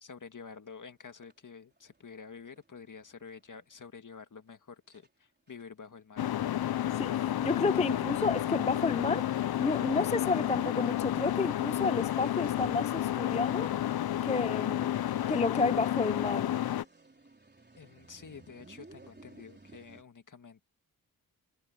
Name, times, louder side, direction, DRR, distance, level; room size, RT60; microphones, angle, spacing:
voice 1, 0.0-6.3 17.8-20.6, left 5 dB, 55° left, 1.9 m, -49 dB
sound 1, 0.7-0.8 1.2-3.9 4.5-4.6 4.9-5.1 5.5-9.1 9.4-9.5 9.7-9.8 10.4-10.6 10.9-20.0, right 3 dB, 25° right, 4.1 m, -57 dB
sound 2, 6.2-16.8, left 12 dB, 75° left, 0.6 m, -31 dB
voice 2, 6.9-13.7 14.2-14.9 15.3-16.5, left 3 dB, 20° left, 0.4 m, -31 dB
cardioid pair, 70°, 37 cm